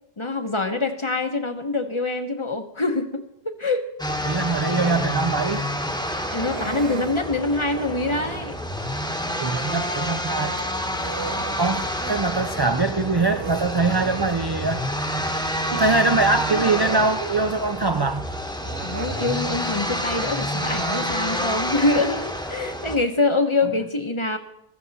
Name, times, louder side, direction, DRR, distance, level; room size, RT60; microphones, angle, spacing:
voice 1, 0.2-3.9 6.3-8.6 18.8-24.4, left 2 dB, 30° left, 1.0 m, -25 dB
sound 1, 4.0-23.0, equal, 5° left, 1.1 m, -28 dB
voice 2, 4.2-5.7 9.4-10.6 11.6-14.9 15.7-18.2 23.6-23.7, right 3 dB, 40° right, 0.3 m, -23 dB
Human voice, 4.6-5.1 6.3-7.2 8.0-8.5 10.4-12.2 12.5-12.7 13.2-14.4 15.6-15.7 16.4-17.2 18.6-19.4 20.4-21.1, right 8 dB, 80° right, 1.0 m, -36 dB
15.5 x 14.0 x 4.1 m
omnidirectional pair, 1.1 m